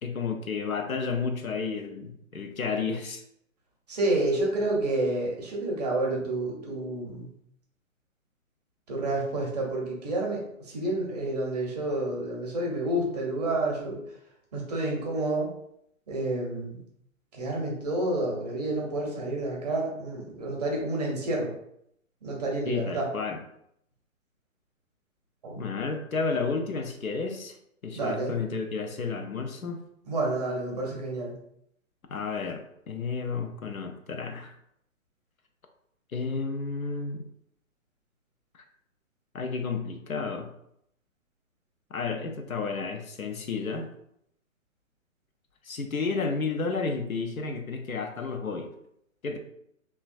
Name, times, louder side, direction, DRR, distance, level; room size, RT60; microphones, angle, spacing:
voice 1, 0.0-3.2 22.7-23.4 25.6-27.6 27.8-29.8 32.1-34.6 36.1-37.2 39.3-40.5 41.9-43.9 45.6-48.7 49.2-49.4, left 4 dB, 80° left, 4 dB, 0.6 m, -31 dB
voice 2, 3.9-7.3 8.9-14.0 14.5-15.5 16.1-16.8 17.3-21.5 22.2-23.1 25.4-25.6 27.9-28.3 30.1-31.3, right 2 dB, 30° right, -2 dB, 0.6 m, -29 dB
3.0 x 2.3 x 2.4 m, 0.74 s
figure-of-eight pair, 130°, 41 cm